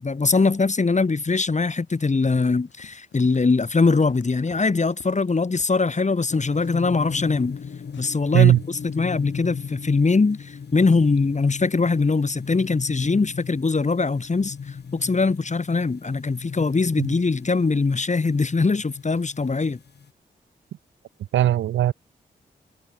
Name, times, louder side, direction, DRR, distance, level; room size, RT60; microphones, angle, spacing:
voice 1, 0.0-7.6 8.0-19.8, left 4 dB, 40° left, 1.8 m, -22 dB
Run, 2.6-5.9 6.3-7.7 7.9-8.1, left 9 dB, 85° left, 7.7 m, -52 dB
sound 1, 6.3-20.1, left 6 dB, 60° left, 2.1 m, -37 dB
voice 2, 21.3-21.9, right 12 dB, 90° right, 0.7 m, -17 dB
supercardioid pair, 40°, 19 cm